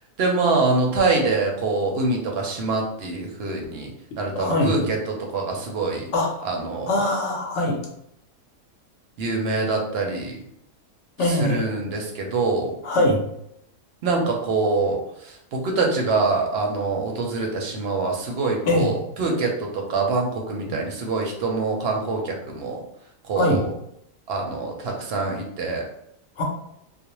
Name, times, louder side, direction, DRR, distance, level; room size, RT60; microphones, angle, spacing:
voice 1, 0.2-3.9 4.2-6.1 6.4-6.9 9.2-10.4 11.2-12.8 14.0-22.8 23.2-23.7 24.3-25.9, right 3 dB, 60° right, 1 dB, 0.7 m, -25 dB
voice 2, 4.3-4.7 6.1-6.5 6.9-7.8 11.2-11.6 12.8-13.2 18.7-18.9 23.4-23.6 26.4-26.5, left 1 dB, 65° left, 0 dB, 0.9 m, -22 dB
2.4 x 2.1 x 2.9 m, 0.75 s
omnidirectional pair, 1.4 m